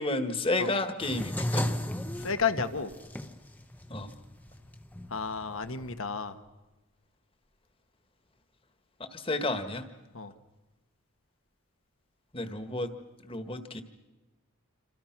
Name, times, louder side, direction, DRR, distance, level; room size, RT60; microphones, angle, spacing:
voice 1, 0.0-1.7 3.9-4.1 9.0-9.9 12.3-12.9 13.2-13.8, left 2 dB, 25° left, 8 dB, 1.6 m, -31 dB
sound 1, 1.0-6.0, left 1 dB, 10° left, 0.9 m, -35 dB
voice 2, 2.2-2.9 5.1-6.3 10.1-10.3, left 5 dB, 70° left, 9 dB, 1.5 m, -31 dB
28.0 x 26.0 x 6.0 m, 1.1 s
head